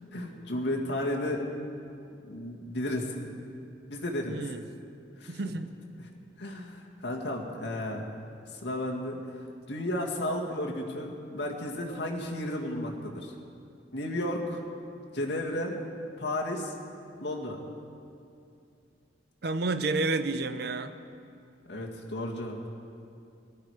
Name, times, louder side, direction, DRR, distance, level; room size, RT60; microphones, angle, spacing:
voice 1, 0.1-1.4 2.2-3.3 3.9-4.4 5.2-5.5 6.4-8.1 8.5-13.3 13.9-14.6 15.1-15.8 16.2-16.7 17.2-17.6 21.7-22.7, left 1 dB, 75° left, -1 dB, 2.0 m, -33 dB
voice 2, 4.3-4.6 5.3-5.7 19.4-20.9, right 3 dB, 60° right, 10 dB, 0.7 m, -30 dB
18.5 x 12.0 x 4.9 m, 2.5 s
head